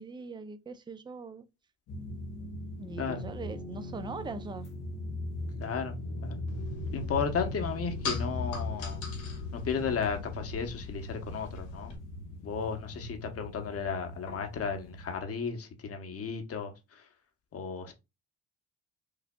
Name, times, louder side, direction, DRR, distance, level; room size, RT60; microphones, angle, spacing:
voice 1, 0.0-1.4 2.8-4.7, right 4 dB, 15° right, 0.4 m, -41 dB
sound 1, 1.9-15.2, left 2 dB, 90° left, 1.0 m, -39 dB
voice 2, 5.6-5.9 6.2-6.4 6.9-9.0 9.5-11.9 12.4-16.7 17.5-17.9, left 6 dB, 50° left, 0.9 m, -34 dB
sound 2, 6.5-12.0, left 4 dB, 70° left, 1.5 m, -43 dB
4.8 x 2.5 x 2.2 m
cardioid pair, 90°, 30 cm